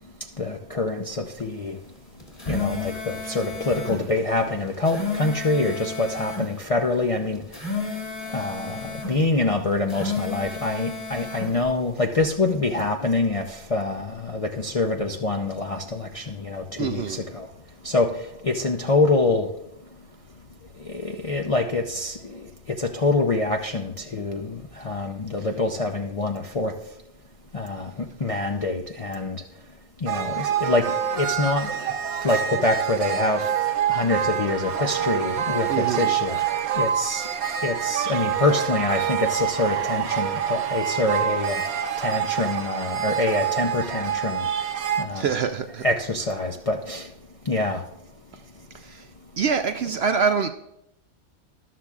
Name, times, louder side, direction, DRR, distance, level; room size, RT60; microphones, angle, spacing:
voice 1, 0.4-1.8 2.5-7.4 8.3-17.5 17.8-18.1 18.4-19.5 20.9-22.4 22.8-26.7 27.5-29.4 30.0-30.9 31.1-31.9 32.2-33.4 33.9-36.4 36.7-37.2 37.6-41.6 42.0-44.4 45.0-45.3 45.8-47.1 47.5-47.8, left 2 dB, 45° left, 2 dB, 0.4 m, -25 dB
sound 1, 2.2-4.0 4.7-6.5 7.4-9.2 9.8-11.5, left 4 dB, 25° left, 2.6 m, -32 dB
voice 2, 16.8-17.2 35.7-36.1 45.1-45.8 48.8-49.0 49.4-50.5, right 6 dB, 65° right, 8 dB, 0.6 m, -25 dB
sound 2, 30.1-45.0, right 9 dB, 85° right, 1.2 m, -26 dB
13.5 x 11.5 x 2.4 m, 0.82 s
omnidirectional pair, 1.4 m